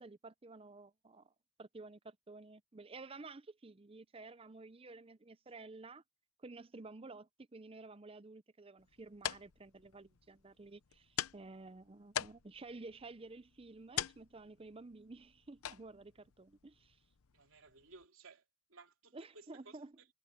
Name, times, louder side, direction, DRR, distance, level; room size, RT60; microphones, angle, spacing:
voice 1, 0.0-1.3 1.6-6.0 6.4-17.0 19.1-19.9, right 3 dB, 25° right, 0.6 m, -52 dB
sound 1, 8.8-18.0, left 10 dB, 90° left, 0.7 m, -46 dB
voice 2, 17.3-20.1, right 3 dB, 70° right, 2.9 m, -59 dB
head